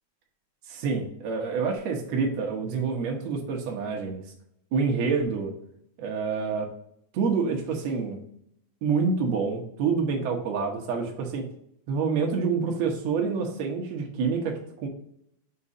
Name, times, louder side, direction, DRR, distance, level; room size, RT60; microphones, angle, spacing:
voice 1, 0.7-4.2 4.7-5.5 6.0-6.7 7.1-8.2 8.8-11.4 11.9-14.9, right 5 dB, 85° right, 1 dB, 1.5 m, -27 dB
5.8 x 4.3 x 4.9 m, 0.71 s
omnidirectional pair, 4.8 m